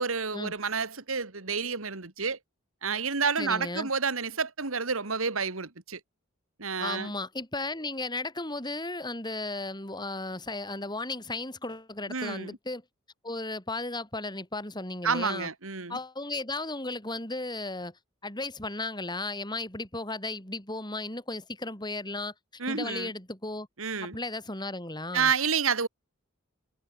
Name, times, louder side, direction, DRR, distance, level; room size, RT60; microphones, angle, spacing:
voice 1, 0.0-2.4 2.8-6.0 6.6-7.1 12.1-12.6 15.0-16.0 22.6-23.1 23.8-24.2 25.1-25.9, right 5 dB, 75° right, 2.1 m, -29 dB
voice 2, 3.4-3.9 6.8-12.8 13.2-15.5 15.9-17.9 18.2-22.3 22.7-23.7 24.0-25.3, left 2 dB, 20° left, 7.4 m, -35 dB
head